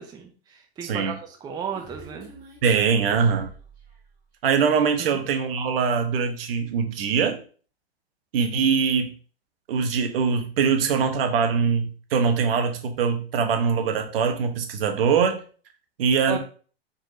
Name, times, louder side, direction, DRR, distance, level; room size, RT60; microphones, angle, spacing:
voice 1, 0.0-2.3 5.0-5.2 16.3-16.4, right 7 dB, 15° right, 4 dB, 0.5 m, -34 dB
voice 2, 0.8-1.1 2.6-3.5 4.4-7.4 8.3-9.1 9.7-15.4 16.0-16.4, right 6 dB, 60° right, 6 dB, 1.1 m, -22 dB
Human voice, 1.2-4.1, right 2 dB, 30° right, 2.5 m, -47 dB
4.6 x 4.0 x 2.7 m, 0.41 s
hypercardioid pair, 110°, 32 cm